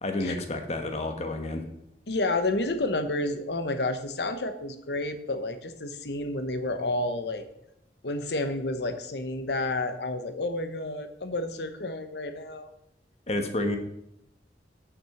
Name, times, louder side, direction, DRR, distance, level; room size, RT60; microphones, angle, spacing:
voice 1, 0.0-1.6 13.3-13.8, left 2 dB, 40° left, 6 dB, 1.1 m, -30 dB
voice 2, 2.1-7.4 8.0-12.7, left 2 dB, 70° left, 8 dB, 0.9 m, -30 dB
6.1 x 6.1 x 7.0 m, 0.78 s
head